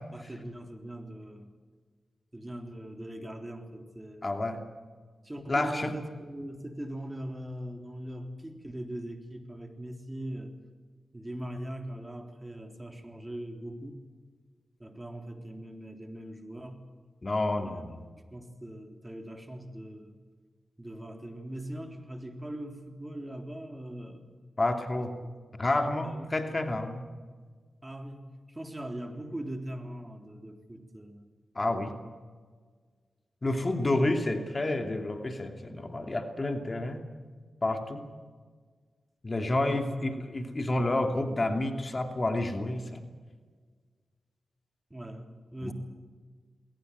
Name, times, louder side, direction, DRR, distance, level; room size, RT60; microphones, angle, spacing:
voice 1, 0.1-1.5 2.3-4.5 5.2-10.5 11.1-14.0 14.8-16.8 17.5-17.8 18.3-20.2 20.8-24.3 25.2-25.3 26.0-26.4 27.8-31.3 31.7-32.0 33.5-33.9 39.5-39.9 40.1-40.3 44.9-45.7, right 1 dB, 20° right, 6 dB, 3.5 m, -41 dB
voice 2, 4.2-4.6 5.5-5.9 17.2-18.0 24.6-25.1 25.5-27.0 31.5-31.9 33.4-37.0 37.6-38.0 39.2-43.0 45.6-45.7, left 2 dB, 40° left, 6 dB, 2.7 m, -29 dB
21.0 x 18.5 x 9.5 m, 1.5 s
cardioid pair, 40°, 0 cm